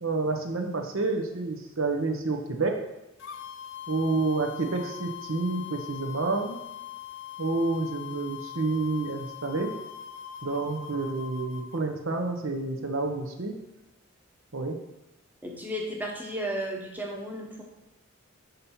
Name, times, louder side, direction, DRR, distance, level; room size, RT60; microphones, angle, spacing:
voice 1, 0.0-2.8 3.9-6.6 7.4-9.7 10.4-13.6 14.5-14.8, right 3 dB, 70° right, 4 dB, 0.9 m, -29 dB
sound 1, 3.2-11.8, left 10 dB, 60° left, 0.4 m, -41 dB
voice 2, 15.4-17.6, equal, 10° right, 0 dB, 0.9 m, -34 dB
5.6 x 5.3 x 4.3 m, 0.97 s
head